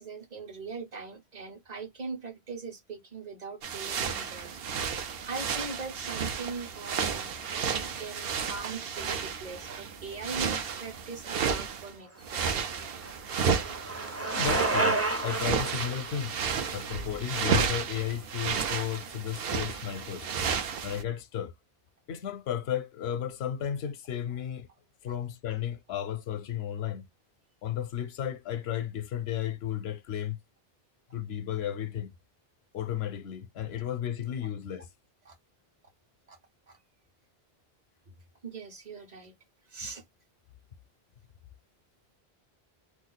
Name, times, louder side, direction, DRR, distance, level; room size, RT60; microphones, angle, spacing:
voice 1, 0.0-4.6 4.9-12.9 35.3-35.4 36.3-36.4 36.7-36.8 38.4-39.3 39.7-40.0, right 4 dB, 45° right, 0.9 m, -41 dB
sound 1, 3.6-11.9 12.2-21.0, right 6 dB, 70° right, 0.9 m, -32 dB
Bicycle, 12.2-18.2, right 2 dB, 20° right, 0.5 m, -32 dB
voice 2, 14.3-16.4 16.7-20.3 20.8-21.5 22.1-24.7 25.0-27.1 27.6-30.4 31.1-32.1 32.7-34.9, left 10 dB, 85° left, 0.8 m, -34 dB
2.5 x 2.3 x 3.8 m
omnidirectional pair, 1.0 m